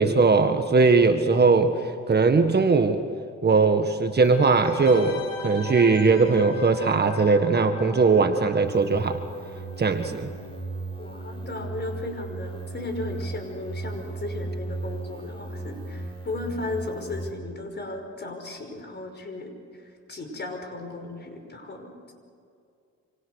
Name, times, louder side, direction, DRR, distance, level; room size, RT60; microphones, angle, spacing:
voice 1, 0.0-1.7 2.1-3.0 3.4-9.2 9.8-10.3, right 4 dB, 35° right, 6 dB, 1.7 m, -20 dB
sound 1, 4.2-9.7 9.9-10.0, left 3 dB, 90° left, 4.9 m, -40 dB
sound 2, 8.6-17.3, right 2 dB, 20° left, 4.9 m, -36 dB
voice 2, 11.0-22.1, left 2 dB, 35° left, 5 dB, 5.3 m, -35 dB
27.0 x 26.5 x 6.6 m, 2.5 s
cardioid pair, 90°, 30 cm